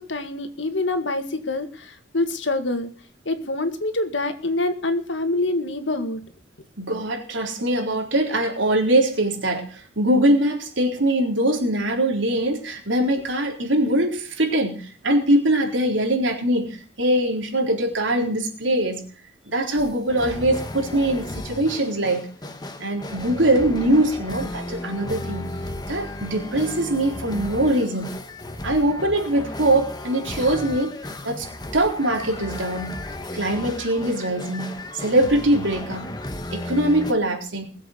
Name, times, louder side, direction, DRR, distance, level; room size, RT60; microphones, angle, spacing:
voice 1, 0.0-2.9 3.3-6.2, left 2 dB, 85° left, 9 dB, 2.0 m, -26 dB
voice 2, 6.8-19.0 19.5-22.3 22.8-25.5 25.9-28.2 28.6-31.0 31.2-31.5 31.7-33.0 33.3-36.1 36.5-37.6, right 1 dB, 90° right, 2 dB, 3.9 m, -22 dB
sound 1, 19.8-37.1, left 1 dB, 20° left, 1.2 m, -34 dB
20.5 x 7.8 x 6.6 m, 0.43 s
head